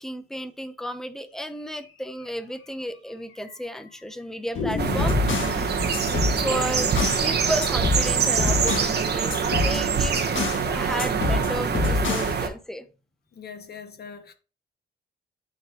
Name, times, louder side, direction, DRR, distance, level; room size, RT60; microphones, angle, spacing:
voice 1, 0.0-6.0 6.4-6.9 7.2-10.2 10.6-12.9, equal, ahead, 0.8 m, -33 dB
sound 1, 1.7-1.9 2.2-2.3 2.6-2.7 3.3-3.8 4.6-9.3, left 4 dB, 80° left, 2.1 m, -35 dB
sound 2, 4.7-7.3 7.6-9.0 9.3-10.7 11.0-12.4, left 4 dB, 65° left, 1.7 m, -27 dB
sound 3, 4.8-12.5, right 6 dB, 50° right, 1.1 m, -24 dB
voice 2, 13.3-14.3, left 6 dB, 50° left, 1.2 m, -41 dB
9.8 x 3.9 x 3.0 m
cardioid pair, 100°, 21 cm